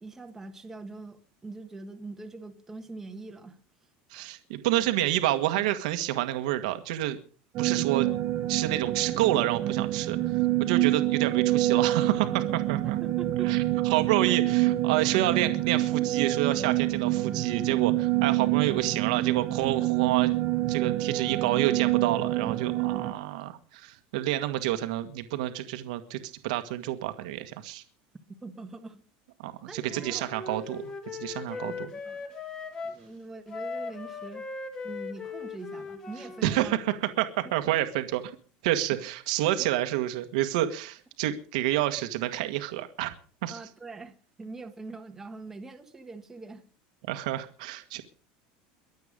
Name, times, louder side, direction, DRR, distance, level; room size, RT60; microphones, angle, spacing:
voice 1, 0.0-3.6 4.1-4.3 12.8-13.6 28.4-29.0 29.7-30.6 31.5-32.3 32.8-34.5 34.8-36.8 37.4-37.7 38.9-39.0 39.6-39.7 43.5-46.6, right 3 dB, 10° right, 5 dB, 1.3 m, -43 dB
voice 2, 4.1-7.2 7.6-8.1 8.5-13.0 13.4-20.3 20.7-27.8 29.4-31.9 36.4-36.8 37.2-38.3 38.6-43.1 43.4-43.6 47.1-48.0, right 14 dB, 75° right, 8 dB, 1.7 m, -29 dB
sound 1, 7.5-23.1, right 16 dB, 35° right, 0.8 m, -27 dB
Wind instrument woodwind instrument, 29.8-33.0 33.5-36.8, left 4 dB, 20° left, 1.9 m, -39 dB
23.0 x 8.2 x 5.3 m, 0.41 s
cardioid pair, 175°, 4 cm